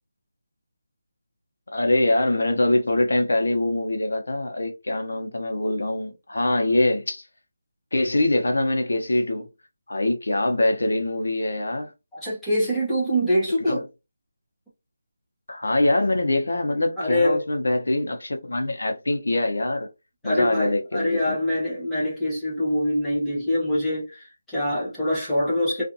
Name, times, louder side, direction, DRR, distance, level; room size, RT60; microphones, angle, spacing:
voice 1, 1.7-7.2 7.9-9.5 9.9-11.9 13.6-13.8 15.5-19.9 20.2-21.4, left 1 dB, 70° left, 0.8 m, -23 dB
voice 2, 12.1-13.9 17.0-17.4 20.2-25.8, equal, 5° left, 0.7 m, -24 dB
2.5 x 2.4 x 2.6 m
figure-of-eight pair, 180°, 0 cm